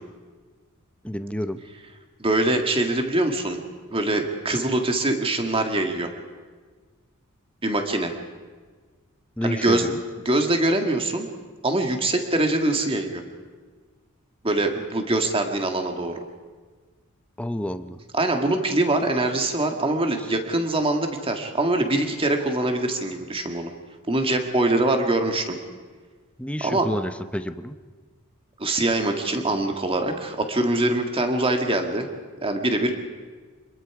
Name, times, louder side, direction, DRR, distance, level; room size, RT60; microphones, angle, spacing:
voice 1, 1.0-1.6 4.0-4.1 9.4-10.0 17.4-18.0 26.4-27.7, left 1 dB, 5° left, 10 dB, 0.7 m, -29 dB
voice 2, 2.2-3.6 3.9-6.1 7.6-8.1 9.4-9.9 10.3-11.3 11.6-13.2 14.4-16.1 18.1-23.7 24.1-25.5 26.6-26.9 28.6-32.1 32.4-32.9, right 2 dB, 25° right, 4 dB, 1.9 m, -23 dB
27.0 x 21.5 x 4.9 m, 1.5 s
head